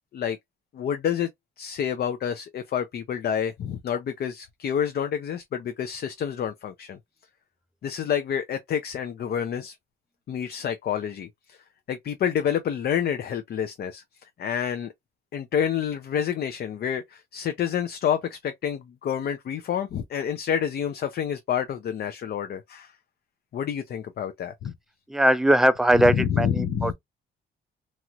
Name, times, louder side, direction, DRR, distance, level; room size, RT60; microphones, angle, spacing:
voice 1, 0.7-1.3 1.6-7.0 7.8-9.8 10.3-11.6 11.9-14.9 15.3-22.9 23.5-24.7 25.9-26.9, left 8 dB, 55° left, 0.5 m, -28 dB
voice 2, 25.1-26.9, right 1 dB, ahead, 0.3 m, -20 dB
3.0 x 2.9 x 2.4 m
cardioid pair, 90°, 20 cm